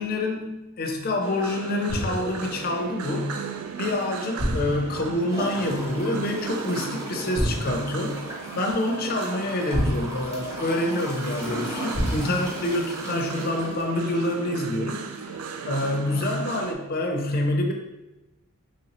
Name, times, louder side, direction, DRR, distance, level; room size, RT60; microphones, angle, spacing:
voice 1, 0.0-3.4 3.8-8.2 8.6-17.7, left 1 dB, 45° left, 2 dB, 0.4 m, -27 dB
sound 1, 1.2-16.7, right 6 dB, 75° right, 0.3 m, -36 dB
sound 2, 1.9-2.4 4.4-5.1 7.4-7.9 9.7-10.6 11.9-12.5, equal, 40° right, 1.2 m, -28 dB
Gurgling / Toilet flush, 5.3-14.7 15.2-15.3, equal, 15° right, 0.6 m, -36 dB
3.1 x 2.8 x 2.9 m, 1.0 s
head